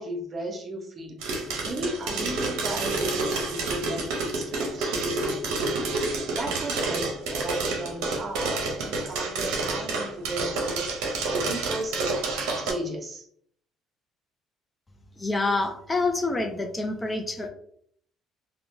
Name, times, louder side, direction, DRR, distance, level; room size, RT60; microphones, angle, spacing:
voice 1, 0.0-12.2 12.6-13.3, right 1 dB, 40° right, 2 dB, 0.7 m, -35 dB
sound 1, 1.2-12.7, right 3 dB, 85° right, 0.6 m, -29 dB
voice 2, 15.2-17.5, left 3 dB, 20° left, 4 dB, 0.4 m, -27 dB
2.9 x 2.2 x 2.5 m, 0.63 s
supercardioid pair, 80°, 0 cm